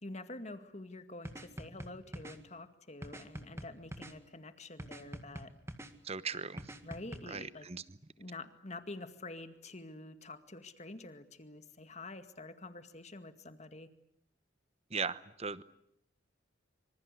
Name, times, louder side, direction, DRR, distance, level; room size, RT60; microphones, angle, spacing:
voice 1, 0.0-5.5 6.8-7.7 8.2-13.9, left 2 dB, 35° left, 9 dB, 2.1 m, -47 dB
sound 1, 1.2-2.4 3.0-4.1 4.8-5.9 6.6-7.2, right 1 dB, 15° right, 1.9 m, -44 dB
voice 2, 6.0-6.7 7.3-7.8 14.9-15.6, right 5 dB, 35° right, 15 dB, 1.0 m, -38 dB
26.0 x 26.0 x 8.3 m, 0.76 s
head